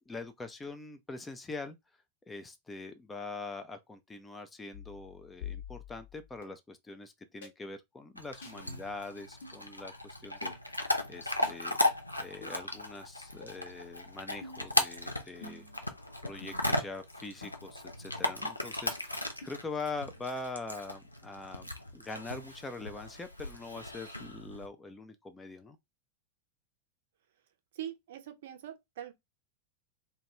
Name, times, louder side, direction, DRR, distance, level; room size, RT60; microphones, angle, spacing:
voice 1, 0.0-1.8 2.3-11.8 12.2-15.7 16.2-25.8, left 3 dB, 15° left, 0.4 m, -43 dB
sound 1, 4.7-6.4 7.4-7.5 8.4-8.6 9.4-9.6 10.4-10.6 11.4-11.6 12.4-12.6 13.4-13.5 14.4-14.7 15.4-15.8 16.4-16.8 17.4-17.5 18.4-18.5 19.4-19.5, left 6 dB, 60° left, 0.8 m, -46 dB
Chewing mastication / Dog, 8.2-24.7, left 1 dB, 85° left, 0.4 m, -36 dB
voice 2, 27.7-29.1, right 11 dB, 55° right, 0.5 m, -42 dB
2.2 x 2.2 x 3.0 m
figure-of-eight pair, 90°, 0 cm